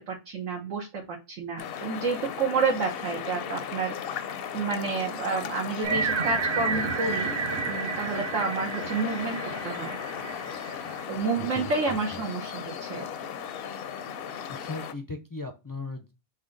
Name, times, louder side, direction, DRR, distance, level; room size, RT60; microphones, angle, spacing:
voice 1, 0.1-7.4 7.6-9.9 11.1-13.3, right 4 dB, 85° right, -1 dB, 1.3 m, -30 dB
sound 1, 1.6-14.9, left 8 dB, 65° left, 0.7 m, -36 dB
sound 2, 5.8-11.0, right 5 dB, 55° right, 0.4 m, -31 dB
voice 2, 11.4-12.2 14.5-16.1, left 3 dB, 30° left, 3 dB, 0.3 m, -38 dB
6.0 x 2.2 x 3.8 m, 0.28 s
omnidirectional pair, 1.3 m